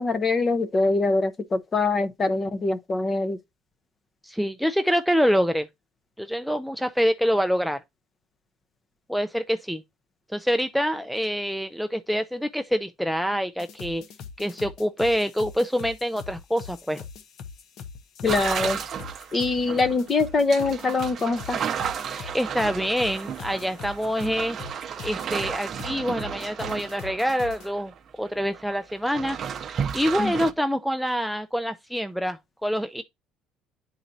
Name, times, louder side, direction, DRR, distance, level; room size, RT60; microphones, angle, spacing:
voice 1, 0.0-3.4 18.2-18.8 19.3-21.6 30.2-30.3, left 3 dB, 30° left, 0.7 m, -23 dB
voice 2, 4.2-5.7 6.2-7.8 9.1-9.8 10.3-14.0 14.4-17.0 22.1-27.9 28.2-29.4 29.9-33.0, equal, ahead, 0.3 m, -26 dB
sound 1, 13.6-27.7, left 6 dB, 60° left, 0.7 m, -42 dB
sound 2, 18.3-28.0 28.2-30.5, right 8 dB, 40° right, 0.6 m, -33 dB
9.9 x 4.0 x 2.6 m
cardioid pair, 120°, 0 cm